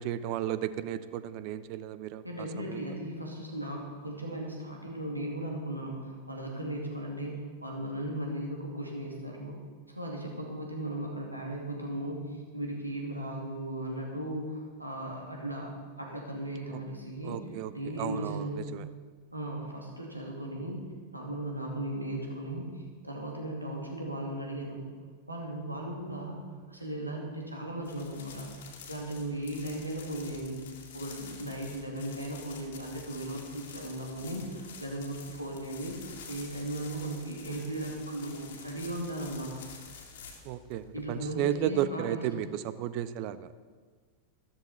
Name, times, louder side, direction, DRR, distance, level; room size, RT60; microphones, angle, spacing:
voice 1, 0.0-2.2 2.7-2.8 17.2-17.7 18.0-18.8 40.4-43.5, right 11 dB, 45° right, 14 dB, 0.7 m, -33 dB
voice 2, 2.2-9.5 9.9-15.7 16.0-18.7 19.3-20.8 21.1-24.8 25.3-26.4 26.7-28.5 28.9-30.6 30.9-36.0 36.3-39.6 40.9-42.4, right 1 dB, 85° right, 0 dB, 2.5 m, -37 dB
sound 1, 27.8-41.8, left 5 dB, 60° left, 2.3 m, -49 dB
14.0 x 13.5 x 4.3 m, 1.6 s
figure-of-eight pair, 90°, 0 cm